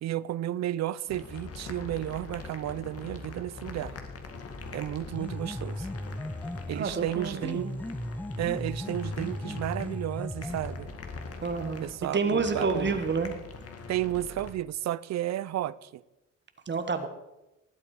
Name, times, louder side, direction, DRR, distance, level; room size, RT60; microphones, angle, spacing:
voice 1, 0.0-4.0 4.7-5.9 6.7-7.7 8.4-10.9 11.8-13.0 13.9-16.0, right 13 dB, 60° right, 0.6 m, -32 dB
sound 1, 1.1-14.5, left 3 dB, 50° left, 2.1 m, -43 dB
sound 2, 5.1-6.9 7.4-10.9, left 1 dB, 5° left, 0.7 m, -36 dB
voice 2, 6.7-7.8 11.4-11.8 12.1-13.3 16.7-17.1, right 4 dB, 35° right, 1.3 m, -29 dB
19.5 x 8.5 x 4.9 m
cardioid pair, 90°, 30 cm